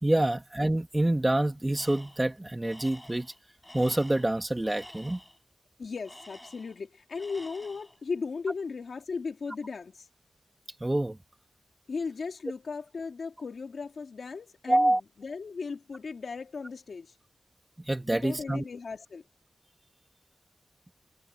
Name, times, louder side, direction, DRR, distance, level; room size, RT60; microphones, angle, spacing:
voice 1, 0.0-3.3 3.7-5.2 10.8-11.2 14.7-15.0 17.8-18.6, right 1 dB, 20° right, 2.3 m, -26 dB
Tools, 1.7-2.3 2.6-5.4 6.0-6.9 7.2-8.0, left 1 dB, 10° left, 7.8 m, -50 dB
voice 2, 5.8-10.1 11.9-17.1 18.1-19.2, left 4 dB, 75° left, 2.9 m, -37 dB
wide cardioid pair, 80°, 0 cm